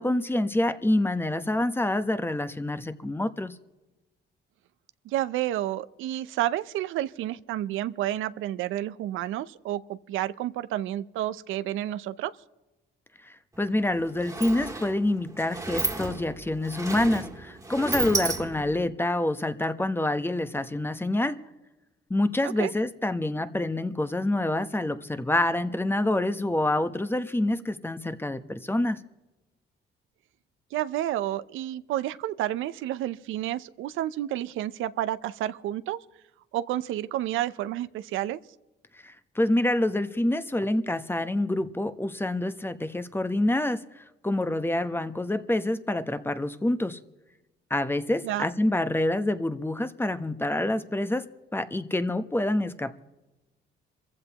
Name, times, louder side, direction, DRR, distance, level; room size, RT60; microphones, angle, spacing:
voice 1, 0.0-3.5 13.2-21.4 22.1-29.0 39.0-47.0 47.7-53.0, left 1 dB, 10° left, 0.9 m, -27 dB
voice 2, 5.1-12.3 22.4-22.7 30.7-36.0 36.5-38.4 48.2-48.5, right 13 dB, 90° right, 0.6 m, -30 dB
Sliding door, 13.5-13.7 13.9-18.9, right 3 dB, 15° right, 1.9 m, -33 dB
27.0 x 15.0 x 3.0 m
cardioid pair, 90°, 20 cm